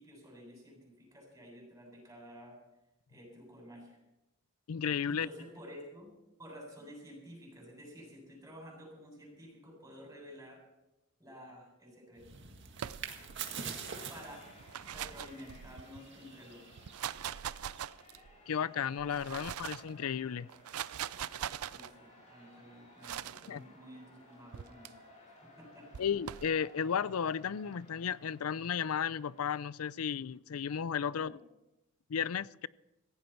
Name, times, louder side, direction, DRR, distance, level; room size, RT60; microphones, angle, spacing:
voice 1, 0.0-2.6 3.1-4.0 5.0-6.1 6.4-10.6 11.2-12.2 13.0-13.7 14.1-14.4 14.8-16.8 19.3-19.5 21.7-25.0 25.3-26.0 31.0-31.4, equal, 15° right, -1 dB, 7.9 m, -52 dB
voice 2, 4.7-5.3 18.5-20.5 23.5-23.6 26.0-31.4 32.1-32.7, left 7 dB, 80° left, 20 dB, 0.5 m, -34 dB
sound 1, 12.2-17.9, right 6 dB, 55° right, 1.9 m, -46 dB
sound 2, 12.8-13.4 14.5-16.0 16.7-18.3 19.0-19.9 20.5-21.9 23.0-23.5 24.5-24.9 25.9-26.5, right 10 dB, 90° right, 0.5 m, -41 dB
sound 3, 13.5-29.8, left 1 dB, 35° left, 6.2 m, -59 dB
17.5 x 16.0 x 4.5 m, 0.92 s
head